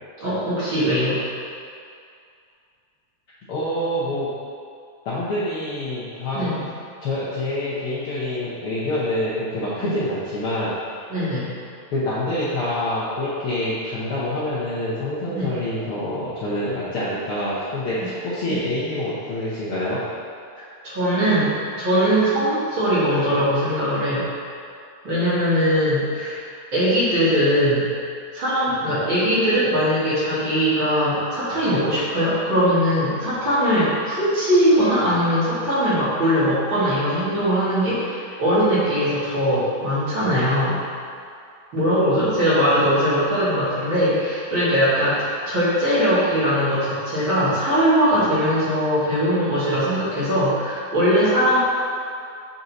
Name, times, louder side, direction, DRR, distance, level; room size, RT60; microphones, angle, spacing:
voice 1, 0.2-1.2 6.3-6.5 9.8-10.0 11.1-11.5 15.3-15.5 20.6-24.3 25.0-26.4 26.7-27.8 28.3-40.8 41.7-51.6, equal, 45° right, -11 dB, 2.4 m, -20 dB
voice 2, 3.5-4.3 5.0-6.5 7.0-11.0 11.9-20.0, left 1 dB, 65° left, -10 dB, 1.5 m, -26 dB
7.6 x 4.2 x 4.0 m, 2.3 s
omnidirectional pair, 3.5 m